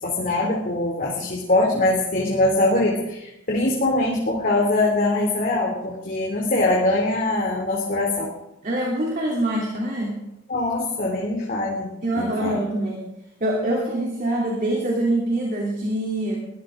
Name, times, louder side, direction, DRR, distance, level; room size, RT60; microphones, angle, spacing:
voice 1, 0.0-8.3 10.5-12.6, left 2 dB, 40° left, -1 dB, 2.9 m, -22 dB
voice 2, 8.6-10.2 12.0-13.1 13.4-16.4, right 1 dB, 40° right, -2 dB, 3.1 m, -24 dB
22.5 x 15.5 x 3.8 m, 0.89 s
head